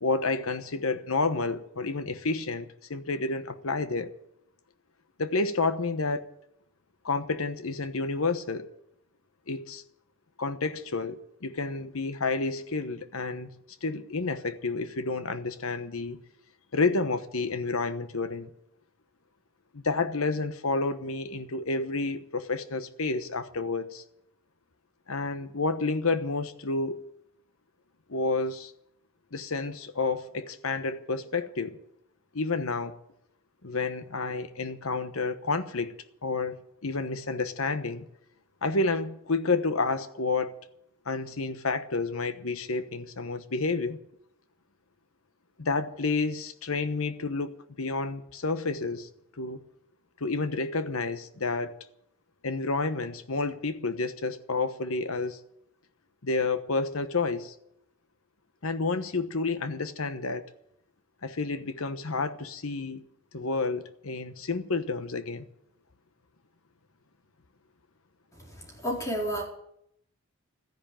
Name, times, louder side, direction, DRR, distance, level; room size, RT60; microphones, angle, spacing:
voice 1, 0.0-4.1 5.2-6.3 7.0-8.7 9.5-9.8 10.4-13.5 13.8-16.2 16.7-18.5 19.7-24.0 25.1-27.0 28.1-28.7 29.3-31.8 32.3-33.0 33.6-35.9 36.2-38.1 38.6-40.5 41.1-44.0 45.6-49.1 49.4-49.6 50.2-51.7 52.4-55.4 56.2-57.5 58.6-60.5 61.2-63.0 63.3-65.5, left 3 dB, 70° left, 1.1 m, -30 dB
voice 2, 68.8-69.4, equal, 15° left, 4.4 m, -29 dB
14.0 x 10.5 x 9.0 m
head